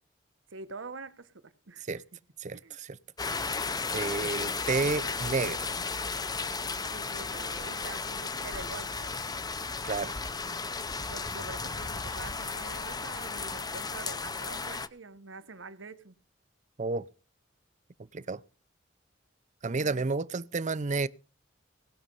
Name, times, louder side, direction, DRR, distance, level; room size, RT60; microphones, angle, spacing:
voice 1, 0.5-2.0 2.5-2.8 6.9-9.1 11.1-16.2 19.7-20.1, right 3 dB, 80° right, 1.2 m, -45 dB
voice 2, 2.4-3.0 3.9-5.7 9.8-10.2 16.8-17.1 18.1-18.4 19.6-21.1, right 3 dB, 40° right, 0.6 m, -31 dB
sound 1, 3.2-14.9, left 4 dB, 20° left, 0.8 m, -34 dB
19.5 x 6.5 x 5.4 m
head